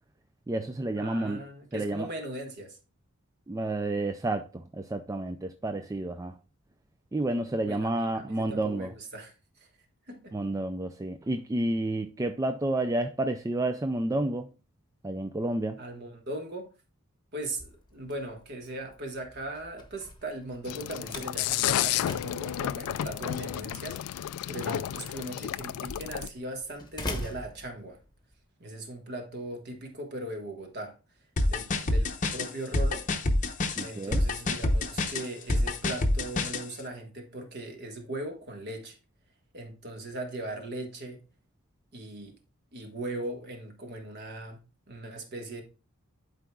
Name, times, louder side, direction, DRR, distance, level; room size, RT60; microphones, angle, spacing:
voice 1, 0.5-1.4 1.7-2.1 3.5-6.4 7.1-8.9 10.3-14.5 15.0-15.8 33.8-34.2, right 2 dB, 15° right, 0.3 m, -30 dB
voice 2, 1.0-2.8 7.6-9.7 10.1-10.3 15.8-16.7 17.3-28.0 28.6-31.0 31.5-33.1 33.8-39.0 39.5-41.2 41.9-42.3 42.7-44.6 44.9-45.6, right 1 dB, 45° right, 1.5 m, -39 dB
Slam, 17.4-28.3, left 1 dB, 20° left, 1.0 m, -44 dB
sound 1, 20.7-26.3, left 11 dB, 80° left, 0.3 m, -32 dB
sound 2, 31.4-36.6, left 2 dB, 35° left, 0.7 m, -27 dB
11.5 x 4.6 x 2.3 m
head